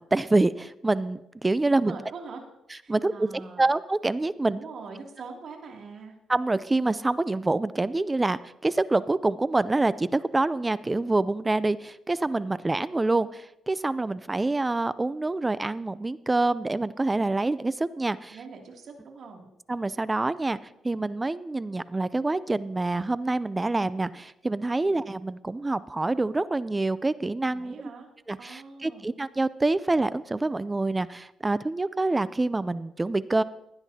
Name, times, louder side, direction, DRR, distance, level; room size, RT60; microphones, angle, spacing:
voice 1, 0.0-1.9 2.9-4.6 6.3-18.4 19.7-20.6 20.8-27.8 28.3-33.4, right 2 dB, 20° right, 17 dB, 0.4 m, -26 dB
voice 2, 1.8-2.4 2.8-3.7 4.5-6.1 18.3-19.5 24.8-25.0 27.5-28.1 28.4-29.1, right 4 dB, 60° right, 1 dB, 2.6 m, -43 dB
16.0 x 11.0 x 2.8 m, 0.85 s
cardioid pair, 90°, 0 cm